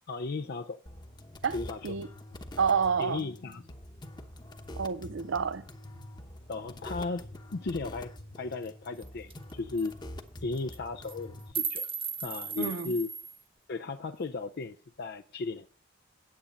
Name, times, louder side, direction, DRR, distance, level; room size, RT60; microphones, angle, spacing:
voice 1, 0.1-0.8 1.5-1.9 3.0-3.7 6.5-8.1 8.4-10.0 10.4-11.9 12.2-13.1 13.7-15.7, left 3 dB, 55° left, 0.5 m, -35 dB
sound 1, 0.9-11.5, left 1 dB, 25° left, 1.0 m, -45 dB
voice 2, 2.6-3.2 4.8-5.6 12.6-12.9, right 6 dB, 75° right, 0.5 m, -28 dB
sound 2, 8.6-8.7 9.0-9.1 9.3-9.5 9.8-9.9 10.6-10.8 11.1-13.4, right 7 dB, 30° right, 1.1 m, -36 dB
9.4 x 8.6 x 5.1 m
head